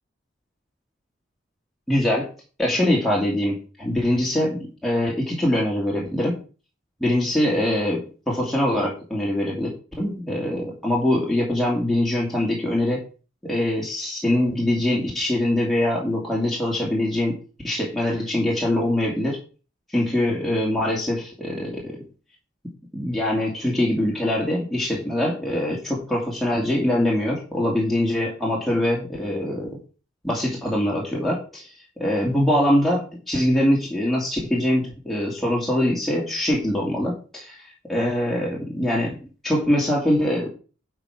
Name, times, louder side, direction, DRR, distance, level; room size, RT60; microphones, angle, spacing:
voice 1, 1.9-2.3 2.6-6.4 7.0-9.7 10.0-13.0 13.4-17.4 17.6-19.4 19.9-22.0 22.9-29.8 30.2-31.7 32.0-40.5, left 1 dB, ahead, -4 dB, 2.5 m, -23 dB
11.0 x 5.0 x 5.9 m, 0.35 s
head